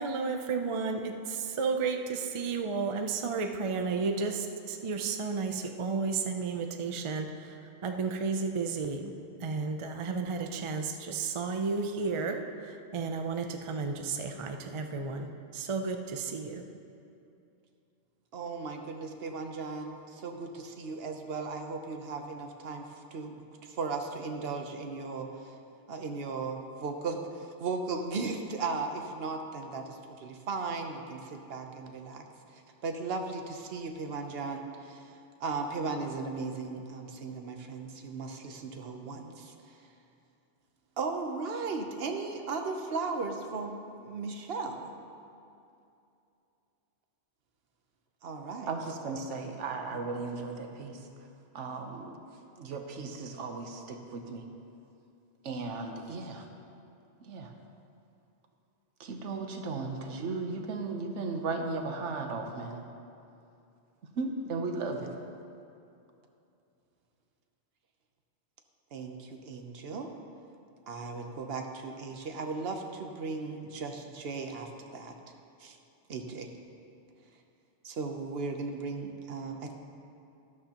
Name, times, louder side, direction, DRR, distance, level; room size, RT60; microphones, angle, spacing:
voice 1, 0.0-9.1 9.4-16.6, right 4 dB, 40° right, 5 dB, 0.5 m, -33 dB
voice 2, 18.3-22.8 23.1-25.5 25.9-32.2 32.5-39.8 41.0-44.9 48.2-48.7 49.9-50.0 68.9-70.1 70.9-75.2 75.6-75.8 76.1-76.5 77.8-79.7, right 4 dB, 60° right, 4 dB, 1.1 m, -37 dB
voice 3, 48.7-51.3 51.5-52.2 52.6-54.5 55.4-56.5 57.2-57.5 59.0-62.9 64.1-65.2, right 3 dB, 85° right, 4 dB, 1.2 m, -36 dB
12.5 x 11.5 x 2.9 m, 2.6 s
omnidirectional pair, 1.2 m